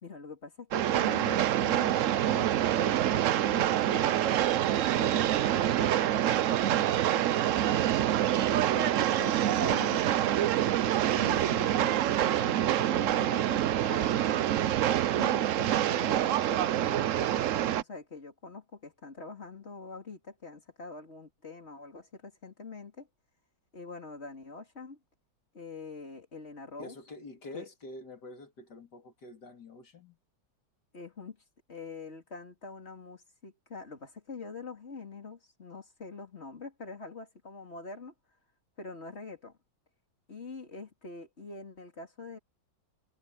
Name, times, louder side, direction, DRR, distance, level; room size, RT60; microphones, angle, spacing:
voice 1, 0.0-4.2 4.7-7.8 8.5-14.6 15.1-23.1 23.7-25.0 25.5-27.0 27.5-27.7 30.9-31.4 31.7-38.1 38.8-39.6 40.3-42.4, left 4 dB, 35° left, 3.2 m, -44 dB
Train, 0.7-17.8, right 12 dB, 70° right, 0.7 m, -26 dB
voice 2, 26.8-30.2, left 2 dB, 60° left, 3.6 m, -46 dB
omnidirectional pair, 2.0 m